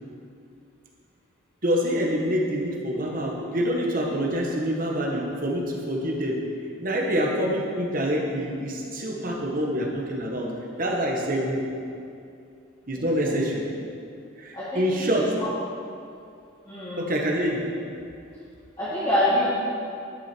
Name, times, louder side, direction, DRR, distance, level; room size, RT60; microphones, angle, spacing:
voice 1, 1.6-6.4 6.8-10.5 10.8-11.6 12.9-13.6 14.4-15.3 17.0-17.6, equal, 45° right, -1 dB, 1.3 m, -26 dB
voice 2, 13.0-13.4 14.5-15.1 15.4-15.5 16.7-17.0 18.8-19.5, left 1 dB, 20° left, -12 dB, 2.0 m, -26 dB
11.5 x 6.4 x 4.4 m, 2.5 s
head